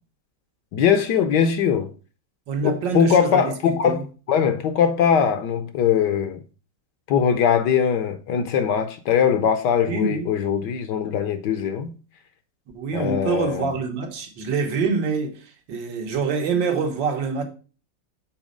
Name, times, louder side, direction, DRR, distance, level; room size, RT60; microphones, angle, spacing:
voice 1, 0.7-1.9 2.6-4.0 4.3-6.4 7.1-11.9 12.9-13.7, left 8 dB, 75° left, 1.2 m, -21 dB
voice 2, 2.5-3.5 3.8-4.0 9.9-10.3 12.7-17.4, right 5 dB, 80° right, 1.8 m, -25 dB
6.2 x 4.1 x 5.0 m
omnidirectional pair, 2.0 m